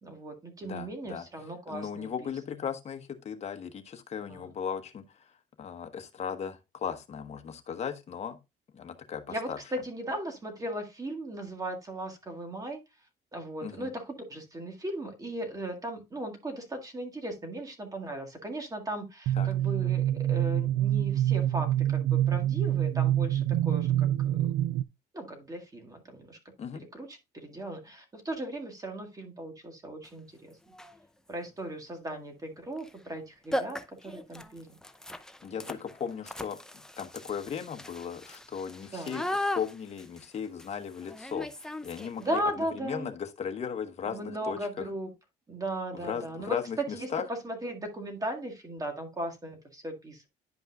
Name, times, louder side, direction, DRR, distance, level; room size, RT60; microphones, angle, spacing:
voice 1, 0.0-2.6 4.3-4.6 9.3-12.8 13.3-24.5 25.1-26.4 26.7-30.6 31.3-34.8 35.5-35.7 38.9-39.2 42.2-43.1 44.1-45.1 45.5-50.3, right 1 dB, 20° right, 1.9 m, -37 dB
voice 2, 0.6-1.2 1.7-5.0 5.6-8.4 8.7-9.2 9.5-9.6 13.6-13.9 19.4-19.5 26.6-26.8 35.4-36.6 37.0-39.2 39.5-42.4 42.8-44.8 46.0-47.2, left 7 dB, 40° left, 1.1 m, -36 dB
sound 1, 19.3-24.8, right 12 dB, 75° right, 0.4 m, -26 dB
sound 2, 30.0-30.1 30.7-31.0 32.8-32.9 33.2-33.3 33.5-42.4, left 1 dB, 5° left, 0.6 m, -38 dB
10.5 x 5.3 x 2.4 m
cardioid pair, 110°, 17 cm